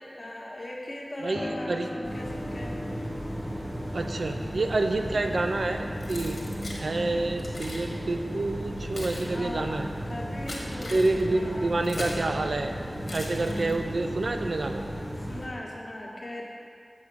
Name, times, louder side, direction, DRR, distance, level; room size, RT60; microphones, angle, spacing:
voice 1, 0.1-2.8 4.3-4.6 4.9-5.2 7.2-7.5 9.3-9.7 10.1-11.0 11.3-11.8 13.2-13.9 15.2-16.4, left 1 dB, 50° left, -3 dB, 1.5 m, -40 dB
voice 2, 1.2-1.9 3.9-6.4 6.7-9.9 10.9-12.7 13.1-14.8, right 2 dB, 80° right, 5 dB, 0.5 m, -28 dB
Piano, 1.3-9.8 10.2-11.2, left 1 dB, 30° left, 0.5 m, -42 dB
sound 1, 2.0-15.5, equal, 30° right, 1.9 m, -35 dB
Keys jangling, 6.0-6.8 7.4-7.9 8.6-12.3 13.0-14.0, left 1 dB, 70° left, 1.4 m, -40 dB
6.9 x 5.0 x 6.2 m, 2.4 s
wide cardioid pair, 45°, 0 cm